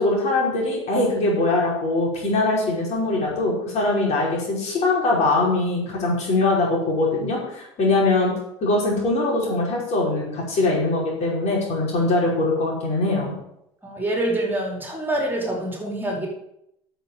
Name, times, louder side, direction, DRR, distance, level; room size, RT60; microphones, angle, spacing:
voice 1, 0.0-8.3 8.6-13.4, left 2 dB, 55° left, -3 dB, 5.5 m, -22 dB
voice 2, 13.8-16.3, right 1 dB, 15° right, -1 dB, 4.7 m, -26 dB
9.2 x 7.7 x 7.4 m, 0.79 s
supercardioid pair, 85°, 14 cm